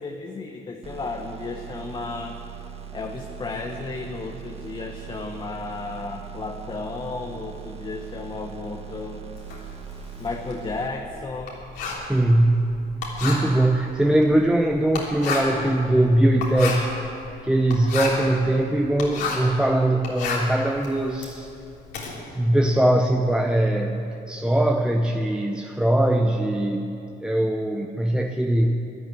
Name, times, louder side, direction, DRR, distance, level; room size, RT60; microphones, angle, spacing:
voice 1, 0.0-2.4 2.9-9.3 9.6-9.7 10.2-11.5, left 3 dB, 25° left, 3 dB, 1.1 m, -33 dB
sound 1, 0.8-10.9, right 8 dB, 35° right, 1.2 m, -40 dB
Writing, 9.4-19.6 19.9-22.1, left 4 dB, 85° left, 3.6 m, -32 dB
voice 2, 11.9-12.9 13.2-16.9 17.4-21.5 22.4-28.9, right 1 dB, 5° right, 3 dB, 0.8 m, -21 dB
13.5 x 11.5 x 9.3 m, 2.8 s
cardioid pair, 110°, 17 cm